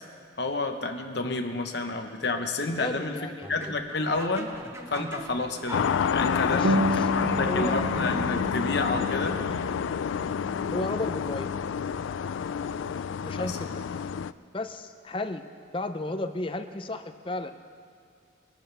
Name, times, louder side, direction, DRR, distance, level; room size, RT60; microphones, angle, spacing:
voice 1, 0.4-3.1 3.5-4.5 4.9-9.4 13.1-13.6, left 3 dB, 55° left, 5 dB, 1.1 m, -30 dB
voice 2, 2.8-3.5 6.5-7.1 7.4-7.8 10.7-11.5 13.2-13.7 14.5-15.4 15.7-17.5, left 2 dB, 25° left, 8 dB, 0.6 m, -33 dB
sound 1, 3.4-9.3, right 1 dB, 15° right, 0.8 m, -42 dB
sound 2, 5.7-14.3, left 7 dB, 75° left, 0.3 m, -29 dB
sound 3, 6.6-11.6, right 1 dB, 75° right, 1.2 m, -32 dB
23.5 x 12.5 x 3.4 m, 2.4 s
head